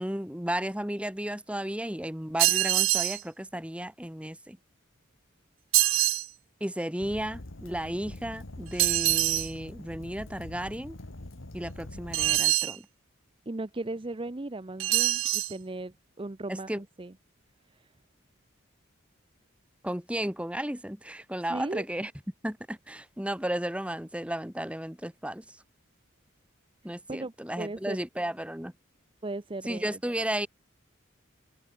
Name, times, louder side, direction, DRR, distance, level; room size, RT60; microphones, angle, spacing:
voice 1, 0.0-4.6 6.6-11.0 11.5-12.9 16.5-16.8 19.8-22.1 22.4-25.6 26.8-28.7 29.7-30.5, right 1 dB, 5° right, 1.5 m, -34 dB
sound 1, 2.4-3.2 5.7-6.3 8.8-9.5 12.1-12.8 14.8-15.5, right 17 dB, 70° right, 0.6 m, -24 dB
Fire, 7.0-12.4, left 1 dB, 70° left, 1.8 m, -44 dB
voice 2, 13.5-17.1 17.7-17.9 21.5-21.8 26.8-28.0 29.2-30.0, right 2 dB, 25° right, 0.6 m, -37 dB
head